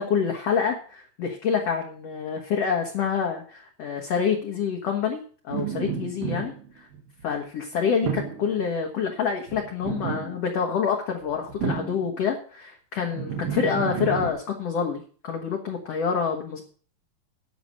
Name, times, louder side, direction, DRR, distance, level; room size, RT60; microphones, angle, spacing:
voice 1, 0.0-5.2 5.4-6.9 7.2-16.6, left 6 dB, 55° left, 1 dB, 2.0 m, -27 dB
sound 1, 5.5-7.3 8.0-8.5 9.5-10.5 11.2-12.2 13.1-14.3, right 7 dB, 70° right, 3.3 m, -31 dB
11.5 x 6.1 x 7.6 m, 0.42 s
omnidirectional pair, 4.4 m